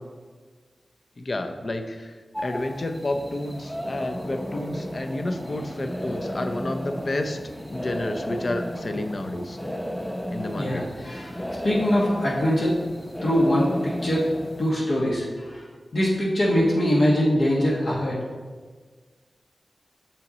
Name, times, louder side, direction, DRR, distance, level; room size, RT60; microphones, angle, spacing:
voice 1, 1.2-7.4 7.7-9.6 10.3-10.9, left 1 dB, 50° left, 7 dB, 0.5 m, -30 dB
sound 1, 2.3-14.7, equal, 10° left, 0.7 m, -34 dB
voice 2, 10.6-12.8 13.2-14.3 14.6-15.6 15.9-18.2, equal, 65° left, -5 dB, 1.4 m, -23 dB
6.9 x 5.7 x 4.0 m, 1.5 s
wide cardioid pair, 85°, 0 cm